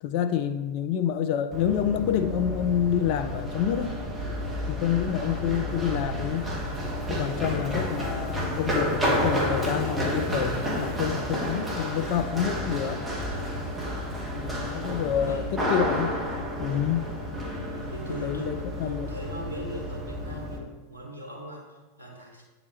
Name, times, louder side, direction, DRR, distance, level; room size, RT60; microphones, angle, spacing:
voice 1, 0.0-4.0 4.7-6.5 7.1-13.0 14.4-16.2 16.6-17.1 18.2-19.2, left 9 dB, 50° left, 0.3 m, -28 dB
Run, 1.5-20.6, equal, 15° right, 1.2 m, -30 dB
voice 2, 17.9-22.4, right 1 dB, 85° right, 1.4 m, -40 dB
8.4 x 3.9 x 3.1 m
figure-of-eight pair, 90°, 0 cm